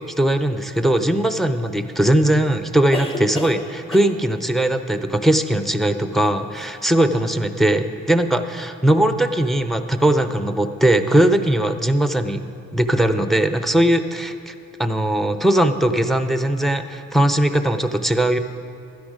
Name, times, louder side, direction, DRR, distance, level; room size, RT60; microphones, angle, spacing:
voice 1, 0.2-12.5 12.7-14.5 14.8-18.4, right 1 dB, ahead, 9 dB, 0.6 m, -19 dB
sound 1, 0.9-1.0 2.9-3.6 3.9-4.2 6.2-6.3 6.5-6.7, left 2 dB, 20° left, 1.1 m, -31 dB
12.5 x 10.5 x 5.0 m, 2.5 s
cardioid pair, 90°, 30 cm